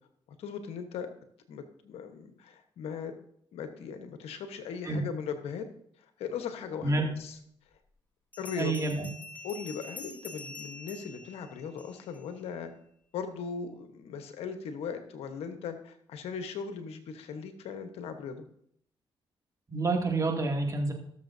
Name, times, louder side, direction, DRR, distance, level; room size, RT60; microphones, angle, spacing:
voice 1, 0.4-1.1 1.5-3.1 3.5-5.7 6.2-7.4 8.4-8.7 9.4-12.7 13.1-18.4, left 6 dB, 80° left, 7 dB, 1.1 m, -38 dB
Bell, 8.3-12.2, left 3 dB, 20° left, 2.9 m, -46 dB
voice 2, 8.6-9.1 19.7-20.9, right 2 dB, 35° right, 1 dB, 2.4 m, -28 dB
18.0 x 6.9 x 2.7 m, 0.69 s
supercardioid pair, 60°, 10 cm